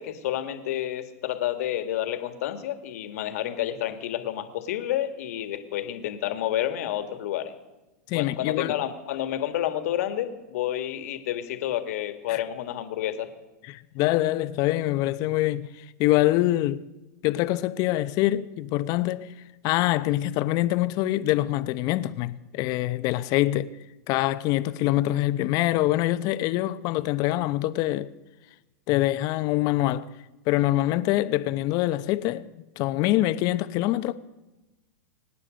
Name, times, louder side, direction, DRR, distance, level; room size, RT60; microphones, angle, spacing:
voice 1, 0.0-7.5 8.1-13.3, left 12 dB, 65° left, 1.8 m, -30 dB
voice 2, 8.1-8.7 12.3-12.4 13.7-16.8 17.2-19.3 19.6-23.7 24.1-28.1 28.9-30.1 30.5-32.5 32.8-34.1, left 16 dB, 45° left, 0.8 m, -24 dB
24.5 x 9.8 x 5.2 m
hypercardioid pair, 110°, 9 cm